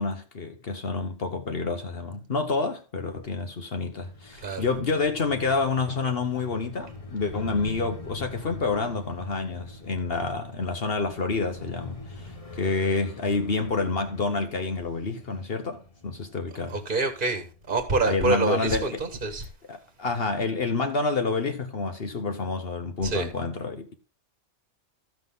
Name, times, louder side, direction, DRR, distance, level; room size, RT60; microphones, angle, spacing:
voice 1, 0.0-16.8 18.0-19.0 19.7-23.9, left 3 dB, 55° left, 1.2 m, -28 dB
sound 1, 3.9-18.0, left 2 dB, 30° left, 1.3 m, -43 dB
voice 2, 16.7-19.4 23.0-23.3, right 3 dB, 40° right, 1.7 m, -26 dB
15.0 x 5.9 x 3.6 m
omnidirectional pair, 1.3 m